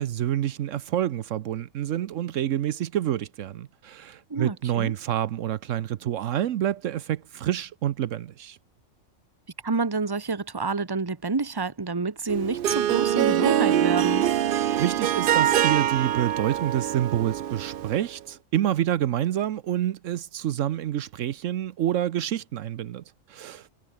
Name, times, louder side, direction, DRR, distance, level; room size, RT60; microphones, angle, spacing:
voice 1, 0.0-8.6 14.8-23.7, right 11 dB, 75° right, 1.1 m, -28 dB
voice 2, 4.3-4.9 9.6-14.3, right 4 dB, 20° right, 1.1 m, -28 dB
Harp, 12.3-18.1, right 11 dB, 55° right, 0.6 m, -24 dB
omnidirectional pair, 1.3 m